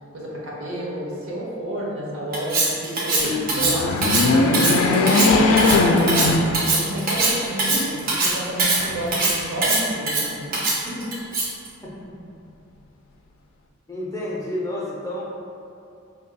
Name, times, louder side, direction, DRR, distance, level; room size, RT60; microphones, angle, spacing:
voice 1, 0.1-6.3 6.6-10.6 10.8-11.1, equal, 70° right, -5 dB, 0.8 m, -30 dB
Cutlery silverware, 2.3-11.7, right 2 dB, 45° right, 0.5 m, -22 dB
sound 1, 3.5-7.1 7.6-7.7 8.7-9.5, left 3 dB, 85° left, 0.3 m, -19 dB
voice 2, 13.9-15.2, left 1 dB, 15° left, -5 dB, 0.4 m, -29 dB
2.7 x 2.3 x 4.0 m, 2.6 s
head